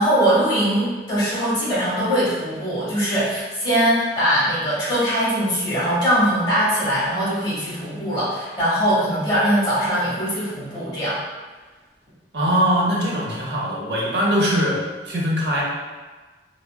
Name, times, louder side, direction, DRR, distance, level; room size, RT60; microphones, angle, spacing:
voice 1, 0.0-11.2, equal, 25° left, -9 dB, 1.0 m, -21 dB
voice 2, 12.3-14.8 15.1-15.6, equal, 70° right, -4 dB, 0.6 m, -21 dB
3.5 x 2.0 x 2.3 m, 1.3 s
head